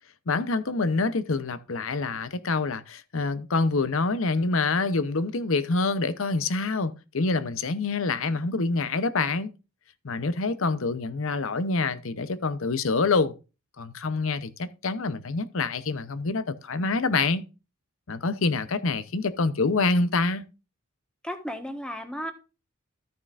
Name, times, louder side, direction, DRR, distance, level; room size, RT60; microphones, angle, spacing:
voice 1, 0.3-9.5 10.0-13.3 13.8-17.4 18.1-20.4, left 3 dB, 65° left, 0.7 m, -26 dB
voice 2, 21.2-22.3, equal, 5° left, 1.3 m, -34 dB
14.5 x 6.6 x 2.5 m
head